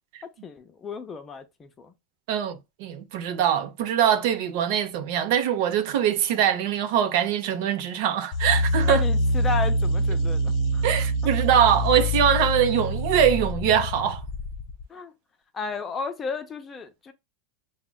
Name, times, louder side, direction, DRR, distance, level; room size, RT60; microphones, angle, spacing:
voice 1, 0.4-1.9 8.8-10.9 11.2-11.3 14.9-15.1 15.5-17.1, left 4 dB, 25° left, 0.6 m, -33 dB
voice 2, 2.3-9.0 10.8-14.2, right 9 dB, 60° right, 0.6 m, -23 dB
Fidget Prop, 8.3-14.8, equal, 50° left, 0.9 m, -25 dB
6.0 x 2.1 x 2.2 m
supercardioid pair, 125°, 0 cm